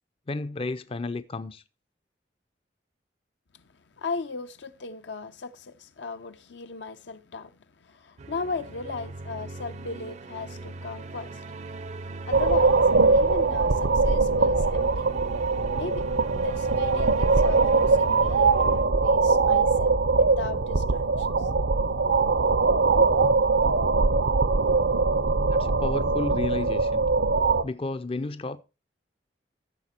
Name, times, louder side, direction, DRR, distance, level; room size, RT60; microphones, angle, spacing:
voice 1, 0.3-1.6 25.5-27.0 27.6-28.6, left 3 dB, 30° left, 0.5 m, -32 dB
voice 2, 4.0-11.4 12.3-12.8 13.1-15.1 15.7-16.1 16.3-19.9 20.2-21.5, left 4 dB, 75° left, 0.7 m, -37 dB
sound 1, 8.2-18.8, right 3 dB, 40° right, 0.5 m, -41 dB
sound 2, 12.3-27.6, right 4 dB, 80° right, 0.7 m, -22 dB
14.0 x 6.6 x 4.3 m
head